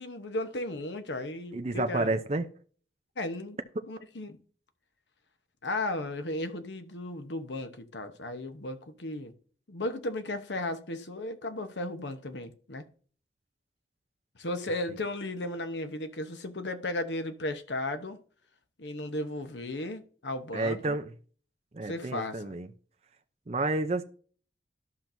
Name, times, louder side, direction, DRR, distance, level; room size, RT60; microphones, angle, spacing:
voice 1, 0.0-2.1 3.2-3.6 3.9-4.4 5.6-9.3 9.7-12.9 14.4-18.2 18.8-21.0 21.8-22.5, left 1 dB, 85° left, 1.0 m, -35 dB
voice 2, 1.5-2.5 20.5-21.1 21.7-22.7 23.5-24.0, right 2 dB, 35° right, 0.5 m, -30 dB
12.5 x 5.9 x 2.7 m
head